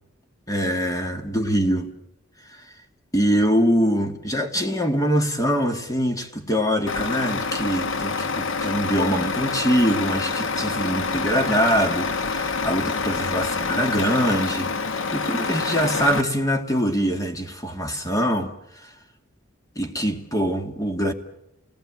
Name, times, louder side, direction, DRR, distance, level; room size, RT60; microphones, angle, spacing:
voice 1, 0.5-2.0 2.5-2.6 3.1-18.9 19.8-21.1, equal, 20° left, 2.2 m, -24 dB
Truck, 6.9-16.2, left 4 dB, 70° left, 1.0 m, -27 dB
29.0 x 19.0 x 9.0 m
head